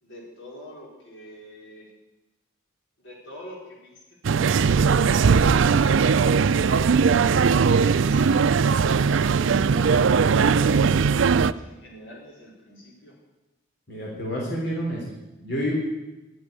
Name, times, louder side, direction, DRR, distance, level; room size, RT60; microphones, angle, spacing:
voice 1, 0.0-1.9 3.0-6.7 7.4-10.0 10.5-13.1, equal, 80° left, -3 dB, 4.6 m, -45 dB
sound 1, 4.2-11.5, right 5 dB, 80° right, 0.4 m, -19 dB
voice 2, 13.9-15.0 15.4-15.7, equal, 55° left, -3 dB, 3.8 m, -28 dB
12.5 x 8.8 x 9.7 m, 1.1 s
head